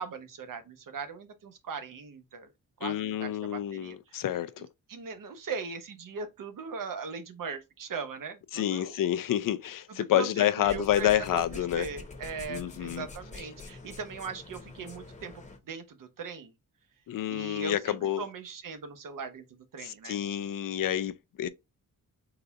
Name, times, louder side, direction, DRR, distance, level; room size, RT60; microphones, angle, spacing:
voice 1, 0.0-2.5 2.8-4.2 4.9-9.0 9.9-16.5 17.3-20.2, right 5 dB, 70° right, 0.9 m, -40 dB
voice 2, 2.8-4.7 8.5-11.9 12.5-13.1 17.1-18.2 19.8-21.5, left 11 dB, 75° left, 0.5 m, -29 dB
sound 1, 10.6-15.6, left 3 dB, 20° left, 0.9 m, -46 dB
3.9 x 2.3 x 4.0 m
wide cardioid pair, 115°, 34 cm